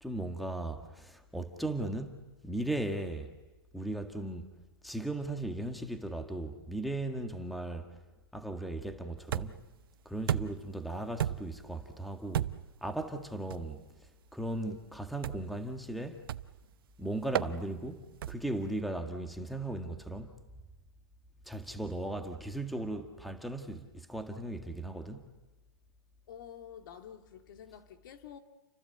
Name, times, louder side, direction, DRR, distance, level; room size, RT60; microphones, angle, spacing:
voice 1, 0.0-3.3 3.7-4.5 4.8-7.9 8.3-9.5 10.0-12.5 12.8-13.8 14.3-16.3 17.0-20.3 21.4-25.3, right 1 dB, ahead, 1.7 m, -37 dB
sound 1, 9.3-9.7 10.3-10.7 11.2-11.6 12.3-12.8 13.5-13.7 15.2-15.6 16.3-16.6 17.3-17.5 18.2-18.6, right 11 dB, 65° right, 0.8 m, -33 dB
voice 2, 26.3-28.4, left 9 dB, 60° left, 2.1 m, -49 dB
30.0 x 24.5 x 8.0 m
hypercardioid pair, 150°, 13 cm